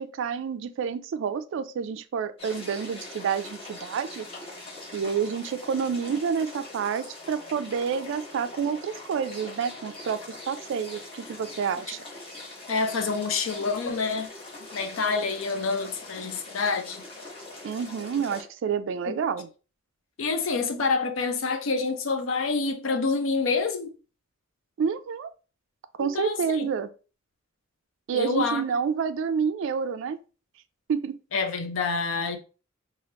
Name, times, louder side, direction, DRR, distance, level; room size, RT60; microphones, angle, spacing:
voice 1, 0.0-4.3 4.9-12.0 17.6-19.5 24.8-25.3 26.0-26.9 28.1-30.2 30.9-31.2, right 6 dB, 65° right, 0.3 m, -29 dB
sound 1, 2.4-18.4, left 2 dB, 30° left, 1.1 m, -42 dB
voice 2, 12.7-14.3 14.7-17.0 19.1-19.2 20.2-23.9 26.0-26.7 28.1-28.6 31.3-32.4, left 4 dB, 75° left, 0.5 m, -27 dB
3.1 x 2.4 x 2.8 m
head